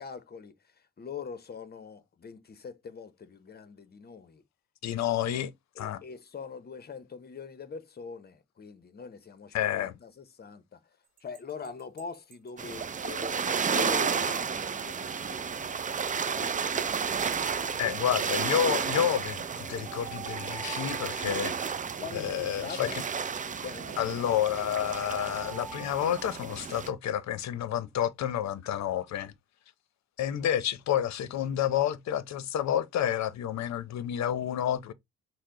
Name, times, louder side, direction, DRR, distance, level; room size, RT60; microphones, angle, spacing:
voice 1, 0.0-4.4 5.7-10.8 11.2-13.4 13.7-16.6 17.2-18.1 22.0-23.0 23.4-24.4, left 6 dB, 30° left, 0.8 m, -43 dB
voice 2, 4.8-5.5 5.8-6.0 9.5-9.9 17.8-21.5 22.1-23.0 24.0-29.3 30.2-34.9, left 10 dB, 65° left, 0.7 m, -29 dB
sound 1, 11.2-13.1 13.5-13.6 14.0-14.1 14.7-15.2 15.8-16.3 16.8-17.2 18.9-22.6 23.8-26.5, right 8 dB, 85° right, 0.8 m, -47 dB
sound 2, 12.6-26.9, right 6 dB, 25° right, 0.5 m, -32 dB
6.5 x 2.2 x 3.7 m
cardioid pair, 90°, 30 cm